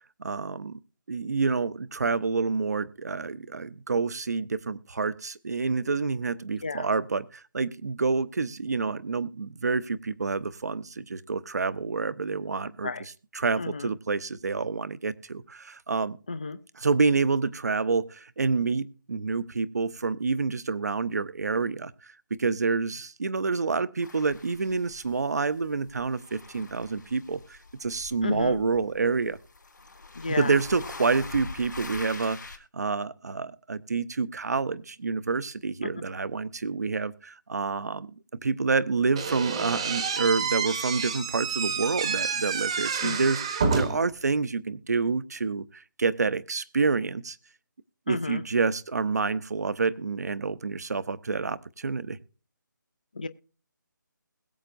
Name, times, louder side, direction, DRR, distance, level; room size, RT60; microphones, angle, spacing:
voice 1, 0.2-0.8 1.1-16.2 16.7-22.1 22.4-29.4 30.3-38.1 38.4-47.4 48.1-52.2, right 4 dB, 55° right, 17 dB, 0.7 m, -28 dB
voice 2, 13.6-13.9 16.3-16.6 28.2-28.6 30.2-30.5 35.8-35.9 43.0-43.2 48.1-48.4 53.2-53.3, left 4 dB, 25° left, 14 dB, 0.4 m, -32 dB
sound 1, 24.0-25.6 25.9-32.6, left 3 dB, 70° left, 3.8 m, -44 dB
Slam / Squeak, 39.2-44.1, right 5 dB, 15° right, 0.8 m, -29 dB
21.5 x 7.9 x 2.5 m, 0.36 s
hypercardioid pair, 180°, 11 cm